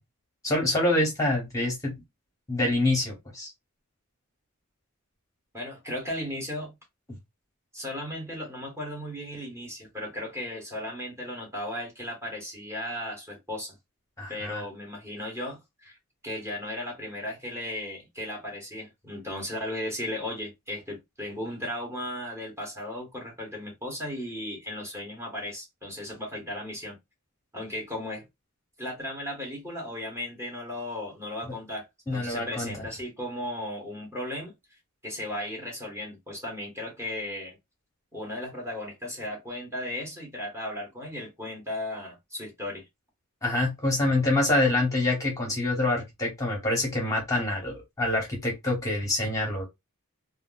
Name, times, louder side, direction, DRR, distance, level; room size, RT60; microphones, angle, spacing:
voice 1, 0.4-1.9 2.5-3.5 14.2-14.6 32.1-32.8 43.4-49.7, left 2 dB, 15° left, 0.9 m, -26 dB
voice 2, 5.5-6.7 7.7-13.8 14.3-16.0 16.2-27.0 27.5-28.2 28.8-34.5 35.0-37.6 38.1-42.8, left 1 dB, 10° right, 0.9 m, -36 dB
2.3 x 2.1 x 3.8 m
head